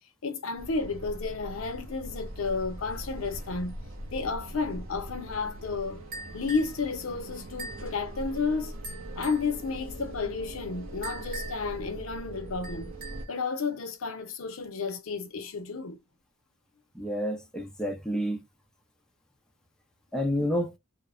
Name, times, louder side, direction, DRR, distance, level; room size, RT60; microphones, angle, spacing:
voice 1, 0.2-3.7 4.1-6.0 6.3-8.7 9.2-12.9 13.3-16.0, left 4 dB, 80° left, 0.6 m, -32 dB
sound 1, 0.6-13.3, right 1 dB, 80° right, 0.8 m, -41 dB
sound 2, 6.1-6.8 7.6-7.9 8.8-9.5 11.0-11.7 12.6-13.3, right 3 dB, 45° right, 0.9 m, -42 dB
voice 2, 17.0-18.4 20.1-20.7, equal, 5° left, 0.5 m, -29 dB
3.0 x 2.0 x 2.4 m
head